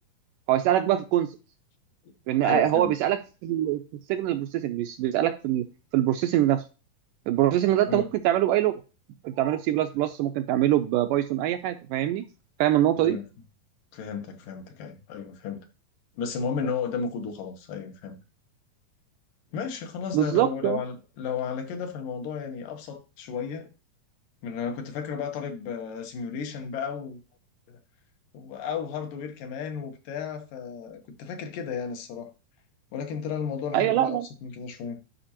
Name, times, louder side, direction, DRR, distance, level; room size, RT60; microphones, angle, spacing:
voice 1, 0.5-1.3 2.3-3.8 4.1-5.6 5.9-6.6 7.3-8.8 9.2-12.2 12.6-13.2 20.1-20.8 33.7-34.3, right 13 dB, 80° right, 2.0 m, -24 dB
voice 2, 2.4-2.9 7.9-8.1 13.0-13.3 13.9-15.7 16.2-18.2 19.5-23.7 24.4-27.2 28.3-32.3 32.9-35.0, left 6 dB, 70° left, 2.5 m, -33 dB
11.5 x 5.1 x 2.9 m
omnidirectional pair, 4.2 m